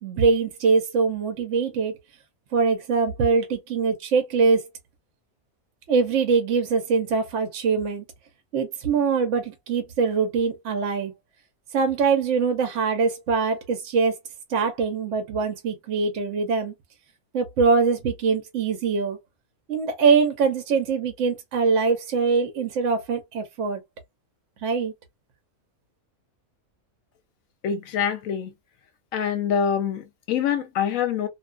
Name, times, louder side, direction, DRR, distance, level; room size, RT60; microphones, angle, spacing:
voice 1, 0.0-1.9 2.5-4.7 5.9-8.0 8.5-11.1 11.7-14.1 14.5-16.7 17.3-19.2 19.7-23.8 24.6-24.9, right 5 dB, 65° right, 0.9 m, -23 dB
voice 2, 27.6-28.5 29.1-31.3, left 8 dB, 75° left, 1.0 m, -25 dB
2.5 x 2.3 x 2.3 m
omnidirectional pair, 1.5 m